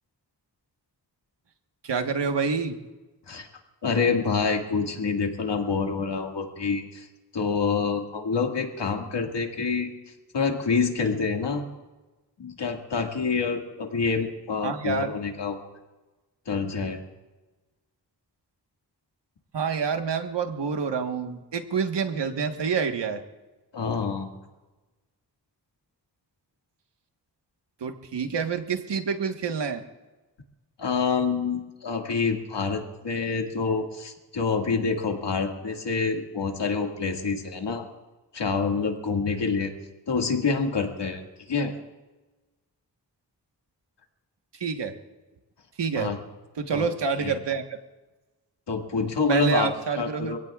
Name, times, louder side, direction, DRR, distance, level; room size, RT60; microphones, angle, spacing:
voice 1, 1.8-2.7 14.6-15.1 19.5-23.2 27.8-29.8 44.6-44.9 45.8-46.1 46.6-47.8 49.3-50.4, right 5 dB, 85° right, 6 dB, 1.4 m, -27 dB
voice 2, 3.8-7.1 7.3-9.9 10.3-11.6 12.4-15.7 16.5-17.0 23.7-24.3 30.8-37.9 38.3-39.7 40.1-41.2 41.5-41.7 45.9-46.2 46.7-46.9 47.2-47.3 48.7-49.7 50.0-50.4, left 5 dB, 80° left, 2 dB, 2.1 m, -27 dB
26.0 x 17.0 x 2.4 m, 1.2 s
cardioid pair, 50°, 41 cm